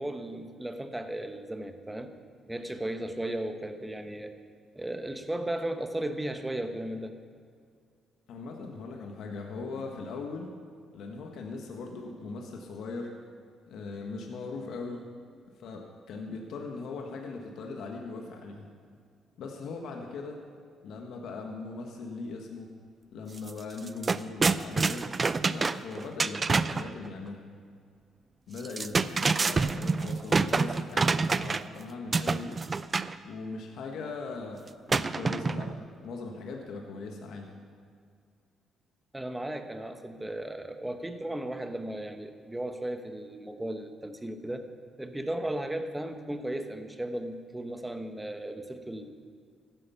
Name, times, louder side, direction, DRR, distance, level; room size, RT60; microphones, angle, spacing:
voice 1, 0.0-2.1 2.5-4.3 4.7-7.2 39.1-44.6 45.0-49.1, right 1 dB, 10° right, 7 dB, 1.1 m, -35 dB
voice 2, 8.3-10.5 10.9-13.1 13.7-15.1 15.6-18.7 19.4-20.4 20.8-22.7 23.1-25.1 25.5-27.5 28.5-32.6 33.2-37.5, left 3 dB, 75° left, 2 dB, 1.5 m, -39 dB
sound 1, 23.4-23.5 23.8-26.9 28.6-31.8 32.1-33.2 34.9-35.8, right 4 dB, 35° right, 0.4 m, -27 dB
15.5 x 10.0 x 5.7 m, 2.2 s
cardioid pair, 90°, 0 cm